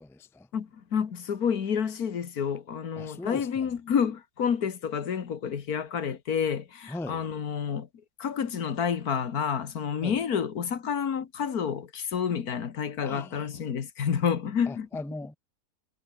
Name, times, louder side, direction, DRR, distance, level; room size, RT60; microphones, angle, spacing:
voice 1, 0.0-0.5 3.0-3.7 6.9-7.2 10.0-10.2 13.0-13.5 14.7-15.4, left 2 dB, 5° left, 0.5 m, -39 dB
voice 2, 0.5-7.9 8.2-14.9, left 7 dB, 80° left, 2.0 m, -29 dB
omnidirectional pair, 1.6 m